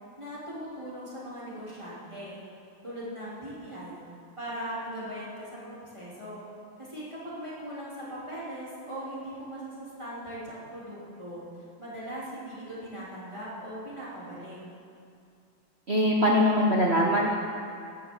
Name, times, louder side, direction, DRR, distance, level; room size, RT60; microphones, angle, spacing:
voice 1, 0.2-2.4 2.8-4.0 4.4-6.4 6.8-11.4 11.8-14.6, equal, 15° right, -9 dB, 3.6 m, -39 dB
voice 2, 15.9-17.4, equal, 40° right, -2 dB, 1.0 m, -22 dB
15.5 x 13.5 x 4.0 m, 2.4 s
omnidirectional pair, 2.3 m